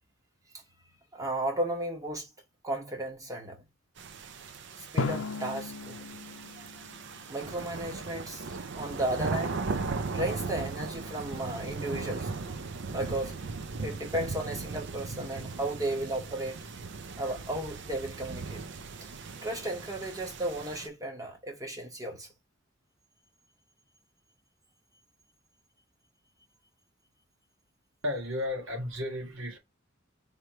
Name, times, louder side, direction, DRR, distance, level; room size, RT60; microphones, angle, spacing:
voice 1, 1.1-2.3 2.6-3.7 4.8-6.2 7.3-8.5 8.8-9.6 10.1-12.6 12.9-13.4 13.8-16.6 17.2-18.6 19.4-22.3, right 1 dB, 15° right, 1.6 m, -34 dB
sound 1, 4.0-20.9, right 4 dB, 65° right, 0.7 m, -38 dB
Drum, 5.0-7.9, left 3 dB, 80° left, 0.6 m, -36 dB
voice 2, 28.0-29.6, left 1 dB, 80° right, 1.8 m, -33 dB
3.5 x 3.2 x 4.4 m
head